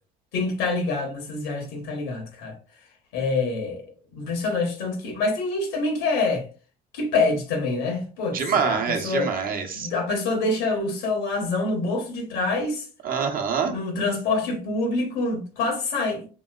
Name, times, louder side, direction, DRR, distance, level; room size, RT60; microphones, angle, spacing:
voice 1, 0.3-2.6 3.1-3.8 4.1-6.5 6.9-9.3 9.7-12.9 13.6-16.3, left 3 dB, 80° left, 1.2 m, -26 dB
voice 2, 8.3-9.9 13.0-13.7, right 6 dB, 50° right, 0.8 m, -25 dB
3.0 x 2.8 x 2.3 m
supercardioid pair, 80°, 19 cm